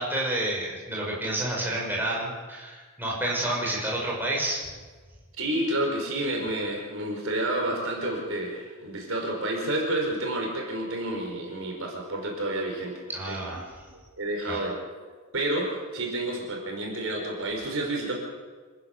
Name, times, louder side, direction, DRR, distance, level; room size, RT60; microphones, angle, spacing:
voice 1, 0.0-4.6 13.1-13.7 14.5-14.6, right 1 dB, 10° right, -4 dB, 5.7 m, -29 dB
voice 2, 5.4-13.4 14.2-14.8 15.3-18.1, right 1 dB, 60° right, 0 dB, 5.1 m, -30 dB
27.0 x 15.0 x 6.8 m, 1.4 s
head